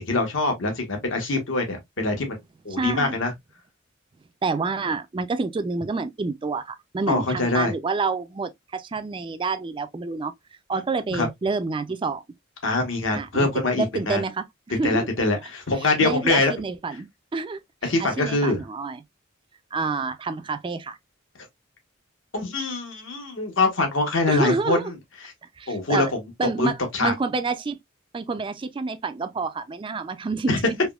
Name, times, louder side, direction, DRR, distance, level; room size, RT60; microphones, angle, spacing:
voice 1, 0.0-2.4 2.6-3.3 7.1-7.7 11.1-11.3 12.6-14.2 14.8-16.5 17.8-18.6 22.3-24.9 25.7-26.1 26.6-27.1 30.5-30.6, left 2 dB, 70° left, 1.2 m, -24 dB
voice 2, 2.7-3.2 4.4-10.3 10.7-12.2 13.1-13.5 13.8-15.1 15.8-19.0 19.7-21.0 24.3-24.9 25.6-26.1 26.4-27.8 28.1-30.8, right 4 dB, 25° right, 0.3 m, -28 dB
3.4 x 3.0 x 2.3 m
head